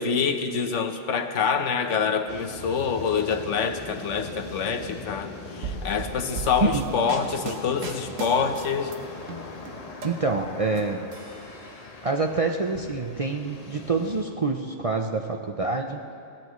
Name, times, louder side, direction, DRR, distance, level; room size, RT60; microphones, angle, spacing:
voice 1, 0.0-8.9, left 6 dB, 70° left, 7 dB, 1.2 m, -26 dB
sound 1, 2.3-14.2, left 3 dB, 35° left, 1.0 m, -41 dB
sound 2, 5.6-9.0 9.3-10.8 11.1-12.0, right 4 dB, 80° right, 1.6 m, -36 dB
voice 2, 10.0-11.1 12.0-16.1, right 3 dB, 40° right, 3 dB, 0.5 m, -26 dB
22.5 x 16.0 x 3.1 m, 2.8 s
omnidirectional pair, 1.3 m